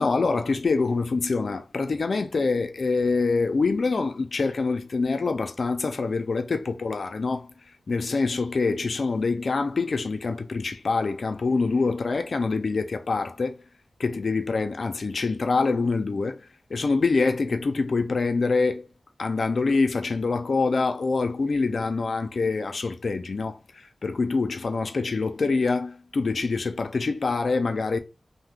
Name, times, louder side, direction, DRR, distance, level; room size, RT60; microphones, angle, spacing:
voice 1, 0.0-7.5 7.9-13.6 14.0-16.4 16.7-18.8 19.2-28.0, left 4 dB, 70° left, 0.4 m, -25 dB
2.7 x 2.1 x 3.3 m
cardioid pair, 45°, 0 cm